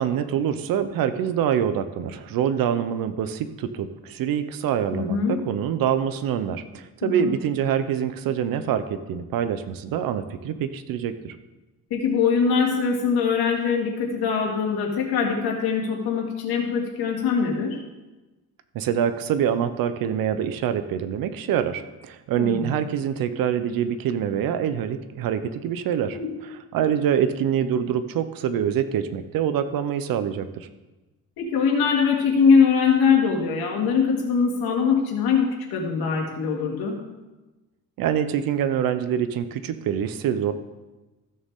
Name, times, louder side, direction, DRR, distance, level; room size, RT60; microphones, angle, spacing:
voice 1, 0.0-11.3 18.7-26.2 26.4-30.7 38.0-40.5, right 9 dB, 65° right, 11 dB, 0.8 m, -25 dB
voice 2, 4.9-5.4 7.0-7.3 11.9-17.8 22.4-22.7 26.1-26.3 31.4-37.0, left 6 dB, 85° left, 0 dB, 2.4 m, -22 dB
14.5 x 6.6 x 3.7 m, 1.1 s
cardioid pair, 150°, 37 cm